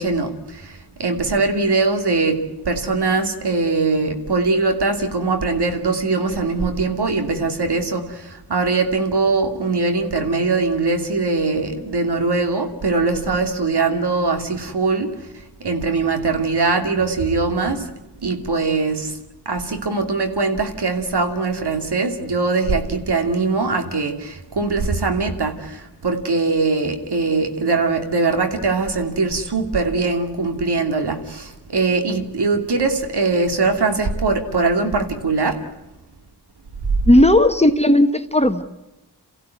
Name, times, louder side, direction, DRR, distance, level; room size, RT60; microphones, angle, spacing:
voice 1, 0.0-15.3 15.6-17.9 18.2-19.2 19.5-35.6, right 3 dB, 70° right, 2.7 m, -21 dB
voice 2, 37.1-38.6, left 1 dB, 15° left, 1.3 m, -14 dB
28.0 x 15.5 x 9.5 m
wide cardioid pair, 60°, 41 cm